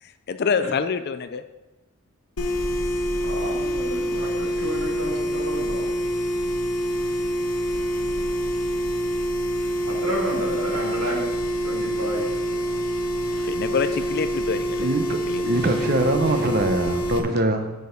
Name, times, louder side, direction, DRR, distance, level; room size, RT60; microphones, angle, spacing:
voice 1, 0.0-1.4 8.0-8.2 13.4-14.9 15.3-15.5 15.8-15.9, left 5 dB, 50° left, 10 dB, 0.5 m, -27 dB
sound 1, 2.4-17.2, equal, 85° left, 1.2 m, -26 dB
voice 2, 3.2-5.9 9.9-11.3 11.6-12.8 13.2-13.4 15.6-15.8 16.2-16.4, equal, 85° right, -4 dB, 3.3 m, -32 dB
voice 3, 14.8-17.7, right 2 dB, 45° right, 6 dB, 0.9 m, -23 dB
9.3 x 6.5 x 5.2 m, 1.1 s
head